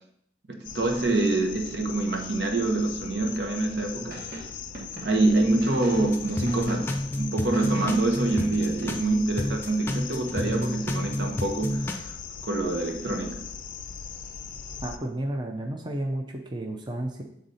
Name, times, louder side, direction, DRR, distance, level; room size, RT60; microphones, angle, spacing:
voice 1, 0.5-4.2 5.0-12.2 12.4-13.4, right 2 dB, 75° right, 3 dB, 1.0 m, -26 dB
sound 1, 0.6-15.0, left 7 dB, 50° left, 0.4 m, -40 dB
sound 2, 4.1-7.1 7.5-8.9, right 1 dB, 55° right, 1.5 m, -43 dB
sound 3, 6.0-9.1 9.4-11.9, left 1 dB, 15° left, 0.7 m, -30 dB
voice 2, 14.8-17.2, right 1 dB, 25° right, 2 dB, 0.6 m, -32 dB
7.8 x 3.9 x 4.1 m, 0.75 s
head